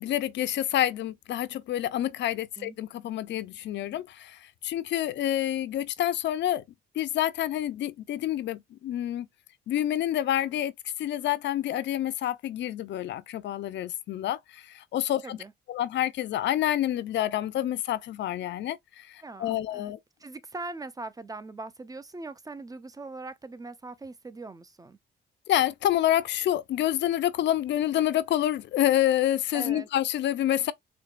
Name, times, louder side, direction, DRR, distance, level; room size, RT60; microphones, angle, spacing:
voice 1, 0.0-6.6 7.0-9.3 9.7-15.4 15.7-20.0 25.5-30.7, left 12 dB, 65° left, 0.4 m, -28 dB
voice 2, 19.2-25.0 29.5-29.9, right 3 dB, 20° right, 0.4 m, -41 dB
4.4 x 2.2 x 2.4 m
cardioid pair, 90°, 20 cm